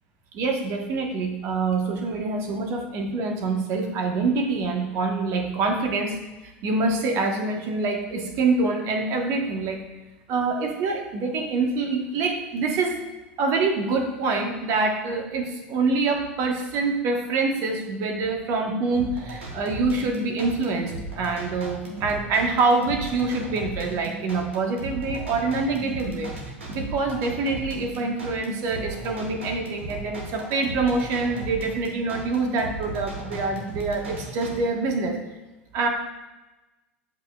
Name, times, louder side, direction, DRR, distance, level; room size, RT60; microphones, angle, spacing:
voice 1, 0.3-6.2 6.4-9.8 10.3-13.0 13.4-26.3 26.7-35.2 35.7-35.9, right 3 dB, 50° right, 2 dB, 1.4 m, -25 dB
sound 1, 18.9-34.5, right 2 dB, 85° right, 1.6 m, -36 dB
8.2 x 7.5 x 2.4 m, 1.1 s
hypercardioid pair, 85°, 6 cm